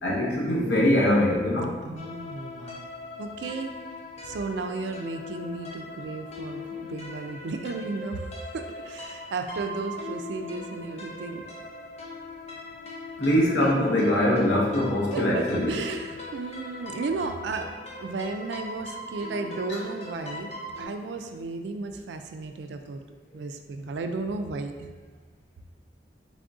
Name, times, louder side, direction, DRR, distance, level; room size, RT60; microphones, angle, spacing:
voice 1, 0.0-1.8 13.2-15.7, left 1 dB, 90° left, -4 dB, 0.9 m, -23 dB
voice 2, 1.8-2.9 3.2-3.8 4.2-8.3 8.5-11.4 15.1-17.7 18.0-20.5 20.8-23.0 23.3-24.9, right 3 dB, 75° right, 6 dB, 0.3 m, -34 dB
sound 1, 2.0-20.9, left 2 dB, 35° left, 0.5 m, -40 dB
3.5 x 2.6 x 3.5 m, 1.4 s
head